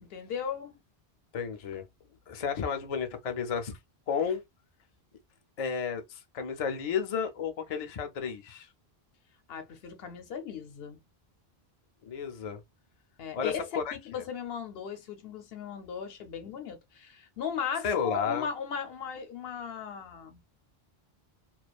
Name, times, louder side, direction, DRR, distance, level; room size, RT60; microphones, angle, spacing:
voice 1, 0.0-0.8 9.5-11.0 13.2-20.4, left 7 dB, 70° left, 0.9 m, -37 dB
voice 2, 1.3-1.8 2.3-3.8 4.1-4.4 5.6-8.7 12.0-12.6 13.3-14.2 17.8-18.5, left 6 dB, 50° left, 0.5 m, -32 dB
2.4 x 2.2 x 2.3 m
omnidirectional pair, 1.0 m